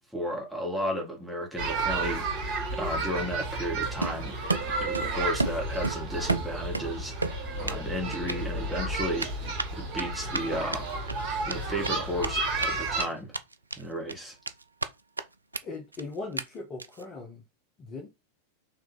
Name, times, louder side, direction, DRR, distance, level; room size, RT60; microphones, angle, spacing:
voice 1, 0.1-9.5 9.7-10.8 11.5-13.3 13.8-14.4, equal, ahead, 1.8 m, -34 dB
sound 1, 1.6-13.0, right 3 dB, 50° right, 2.3 m, -32 dB
Run, 4.0-5.1 5.4-6.9 7.2-7.8 8.1-8.4 9.2-12.7 13.0-13.1 13.3-13.8 14.1-14.9 15.2-15.3 15.5-15.6 15.9-16.0 16.4-16.5 16.8-17.0, right 3 dB, 80° right, 0.3 m, -32 dB
voice 2, 15.6-17.4 17.8-18.1, left 3 dB, 30° left, 1.2 m, -39 dB
4.4 x 3.1 x 3.9 m
figure-of-eight pair, 90°, 0 cm